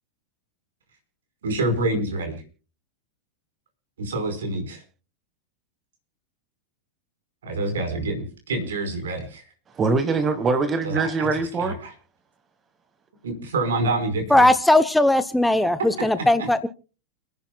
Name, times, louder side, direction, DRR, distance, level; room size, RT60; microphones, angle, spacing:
voice 1, 1.4-2.4 4.0-4.8 7.4-9.4 10.8-11.9 13.2-14.5, right 2 dB, 65° right, 5 dB, 5.0 m, -27 dB
voice 2, 9.7-11.7, right 4 dB, 20° right, 10 dB, 1.5 m, -23 dB
voice 3, 14.3-16.7, left 1 dB, 5° left, 13 dB, 0.7 m, -18 dB
30.0 x 10.5 x 2.3 m, 0.35 s
figure-of-eight pair, 90°, 0 cm